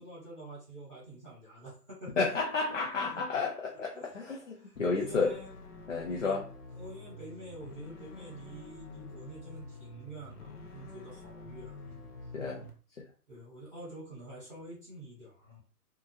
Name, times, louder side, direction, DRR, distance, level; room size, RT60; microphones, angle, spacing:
voice 1, 0.0-2.3 3.0-3.2 3.7-4.2 4.5-5.5 6.1-6.4 6.7-12.5 13.3-15.6, right 1 dB, 5° right, -16 dB, 1.0 m, -47 dB
voice 2, 2.2-5.3 5.9-6.5 12.3-12.7 13.0-13.1, left 4 dB, 50° left, -1 dB, 0.5 m, -31 dB
sound 1, 4.8-12.7, left 2 dB, 70° left, 0.9 m, -47 dB
2.8 x 2.3 x 2.5 m, 0.38 s
hypercardioid pair, 175°, 48 cm